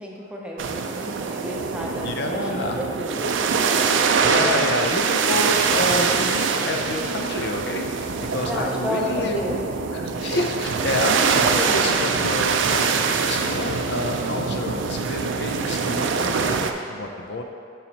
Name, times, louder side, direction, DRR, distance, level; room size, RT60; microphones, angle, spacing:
voice 1, 0.0-3.7 8.4-10.3, left 1 dB, 5° right, -2 dB, 0.6 m, -32 dB
sound 1, 0.6-16.7, right 5 dB, 85° right, 0.4 m, -23 dB
voice 2, 2.0-2.8 4.2-9.4 9.9-17.4, left 2 dB, 65° left, 3 dB, 0.5 m, -28 dB
7.1 x 5.5 x 2.9 m, 2.3 s
head